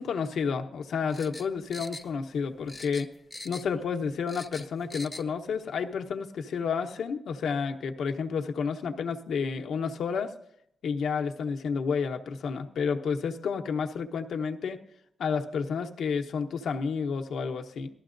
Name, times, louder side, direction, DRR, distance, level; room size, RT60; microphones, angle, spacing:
voice 1, 0.0-3.1 3.4-10.3 10.8-14.8 15.2-17.9, left 6 dB, 75° left, 5 dB, 0.9 m, -30 dB
sound 1, 1.1-2.4 2.7-3.8 4.1-5.3 5.6-5.7, left 2 dB, 15° left, 0.6 m, -43 dB
18.5 x 13.0 x 2.6 m, 0.73 s
wide cardioid pair, 125°, 0 cm